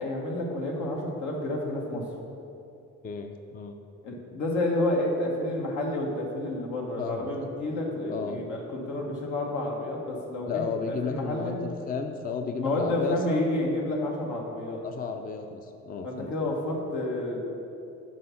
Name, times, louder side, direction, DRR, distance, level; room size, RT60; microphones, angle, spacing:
voice 1, 0.0-2.0 4.0-11.6 12.5-14.8 16.0-17.4, left 1 dB, 85° left, -1 dB, 1.3 m, -30 dB
voice 2, 3.0-3.8 7.0-7.3 8.1-8.4 10.5-13.6 14.8-16.3, left 5 dB, 30° left, 6 dB, 0.4 m, -33 dB
6.4 x 4.7 x 5.6 m, 2.7 s
cardioid pair, 90°, 30 cm